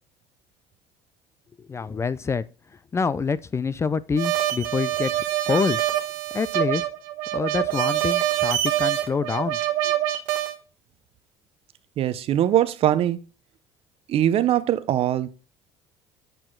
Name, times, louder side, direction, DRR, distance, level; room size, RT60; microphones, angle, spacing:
voice 1, 1.7-2.4 2.9-5.8 6.3-6.9 7.3-9.6 9.8-9.9, left 5 dB, 25° left, 0.4 m, -26 dB
sound 1, 4.2-10.5, right 13 dB, 85° right, 1.2 m, -25 dB
voice 2, 12.0-13.2 14.1-15.3, right 11 dB, 55° right, 0.7 m, -21 dB
7.8 x 4.6 x 3.8 m
supercardioid pair, 90°, 12 cm